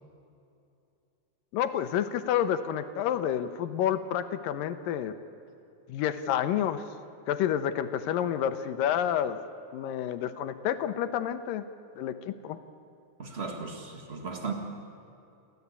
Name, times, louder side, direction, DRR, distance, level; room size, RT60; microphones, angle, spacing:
voice 1, 1.5-5.1 5.9-6.8 7.3-9.4 9.7-11.7 12.0-12.6, left 10 dB, 75° left, 10 dB, 2.3 m, -29 dB
voice 2, 13.2-14.5, right 4 dB, 40° right, 3 dB, 0.8 m, -36 dB
29.5 x 13.5 x 8.3 m, 2.6 s
omnidirectional pair, 4.3 m